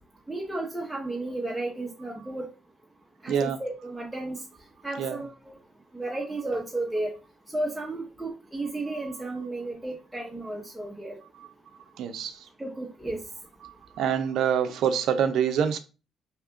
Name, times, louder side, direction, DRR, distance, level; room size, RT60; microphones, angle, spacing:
voice 1, 0.3-2.5 3.2-4.4 4.8-5.5 5.9-7.1 7.5-11.2 12.6-13.2, right 2 dB, 5° right, 0.6 m, -33 dB
voice 2, 12.0-12.4 14.0-15.8, right 8 dB, 80° right, 0.4 m, -25 dB
2.8 x 2.3 x 3.5 m
cardioid pair, 90°, 0 cm